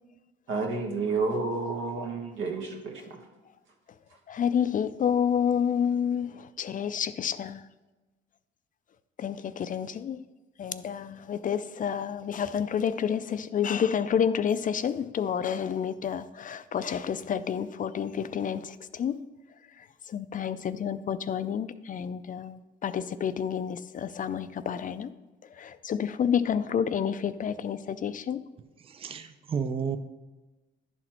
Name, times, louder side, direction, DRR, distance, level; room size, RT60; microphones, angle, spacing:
voice 1, 0.5-3.0, right 3 dB, 80° right, 1.4 m, -30 dB
voice 2, 4.3-7.6 9.2-10.2 10.6-19.2 20.1-25.1 25.6-28.4, left 8 dB, 40° left, 0.4 m, -29 dB
voice 3, 28.8-30.0, right 6 dB, 30° right, 0.5 m, -32 dB
10.5 x 4.2 x 4.3 m
cardioid pair, 90°, 20 cm